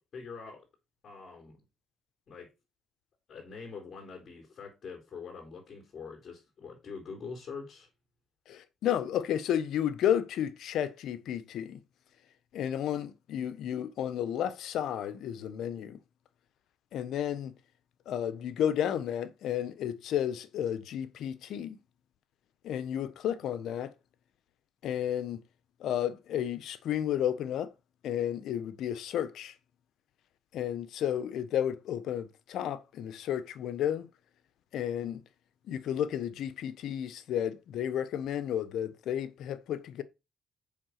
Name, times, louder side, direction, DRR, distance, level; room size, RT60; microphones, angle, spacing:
voice 1, 0.1-0.7 1.0-1.6 2.3-2.5 3.3-7.9, left 5 dB, 55° left, 4.2 m, -44 dB
voice 2, 8.5-11.8 12.5-16.0 16.9-17.5 18.1-21.8 22.6-23.9 24.8-25.4 25.8-27.7 28.0-29.5 30.5-34.1 34.7-35.2 35.7-40.0, left 10 dB, 80° left, 1.1 m, -32 dB
7.2 x 5.8 x 6.6 m
cardioid pair, 90°, 0 cm